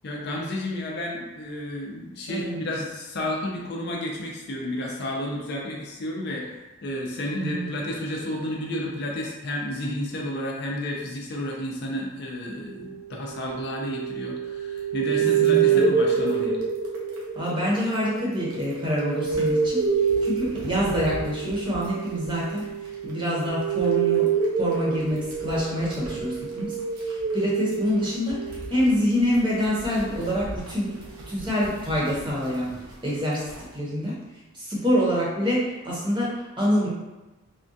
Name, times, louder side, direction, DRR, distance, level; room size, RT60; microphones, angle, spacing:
voice 1, 0.0-6.5 6.8-16.6, left 1 dB, 50° left, -2 dB, 0.5 m, -31 dB
voice 2, 2.3-2.6 7.3-7.7 15.2-15.8 17.3-19.8 20.2-22.7 23.0-24.3 24.5-26.7 27.0-28.4 28.7-30.9 31.3-32.7 33.0-33.5 33.7-34.2 34.5-36.9, equal, 20° right, -6 dB, 0.7 m, -26 dB
sound 1, 12.7-28.9 29.3-30.1, right 6 dB, 55° right, 0.4 m, -27 dB
sound 2, 14.8-14.9 15.1-33.7, right 1 dB, 85° right, 0.7 m, -43 dB
3.5 x 2.2 x 2.6 m, 1.1 s
head